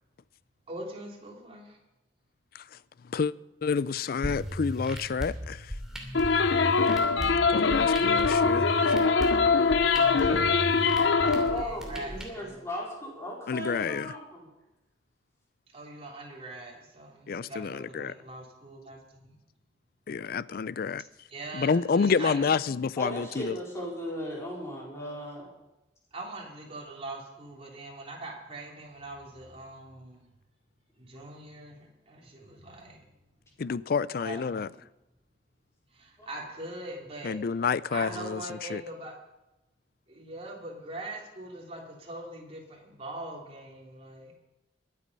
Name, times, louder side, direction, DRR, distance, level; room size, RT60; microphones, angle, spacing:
voice 1, 0.7-1.8 9.9-12.6 15.7-19.3 21.3-22.5 26.1-30.2 31.0-33.0 34.2-34.7 35.9-37.4 37.9-39.1 40.1-44.3, right 2 dB, 35° right, 3.2 m, -42 dB
voice 2, 3.6-5.6 7.5-8.7 13.5-14.1 17.3-18.1 20.1-21.0 21.5-23.6 33.6-34.7 37.2-38.8, left 5 dB, 55° left, 0.4 m, -29 dB
sound 1, 4.2-12.2, equal, 5° right, 2.7 m, -37 dB
sound 2, 6.1-11.6, left 4 dB, 85° left, 0.7 m, -23 dB
voice 3, 11.5-14.5 23.0-25.5 36.2-36.3, equal, 15° left, 4.5 m, -37 dB
22.5 x 8.4 x 5.4 m
head